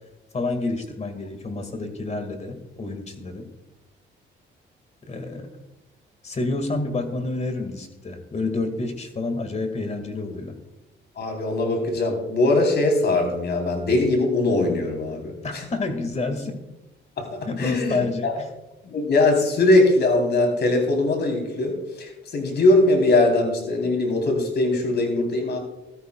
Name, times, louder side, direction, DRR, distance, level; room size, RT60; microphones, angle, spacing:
voice 1, 0.3-3.5 5.1-5.5 6.2-10.5 15.4-16.6 17.5-18.5, left 3 dB, 35° left, 7 dB, 2.1 m, -29 dB
voice 2, 11.2-15.6 17.2-18.4 18.8-25.6, left 2 dB, 55° left, 3 dB, 3.8 m, -21 dB
16.5 x 13.0 x 2.4 m, 0.97 s
cardioid pair, 90°, 20 cm